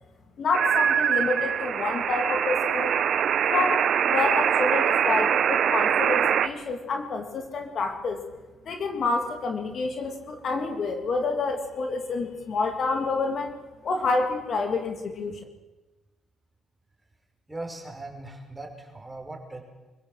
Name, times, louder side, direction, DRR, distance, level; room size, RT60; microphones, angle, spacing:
voice 1, 0.4-3.0 3.5-8.2 8.6-13.5 13.8-15.4, left 3 dB, 55° left, 4 dB, 3.0 m, -28 dB
sound 1, 0.5-6.5, right 8 dB, 65° right, 1.1 m, -23 dB
voice 2, 17.5-19.6, right 2 dB, 15° right, 2 dB, 5.3 m, -39 dB
24.5 x 16.5 x 7.7 m, 1.2 s
cardioid pair, 90°, 0 cm